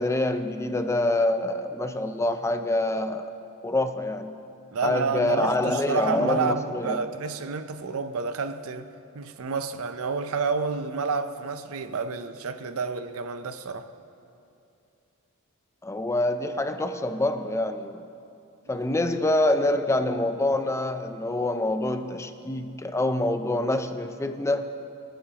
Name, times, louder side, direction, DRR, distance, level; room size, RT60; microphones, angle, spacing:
voice 1, 0.0-3.3 3.6-4.4 4.8-7.0 15.8-18.0 18.7-24.7, left 1 dB, 15° left, 0.4 m, -26 dB
voice 2, 4.7-8.9 9.1-13.9, right 4 dB, 70° right, 0.6 m, -29 dB
26.0 x 9.4 x 2.9 m
head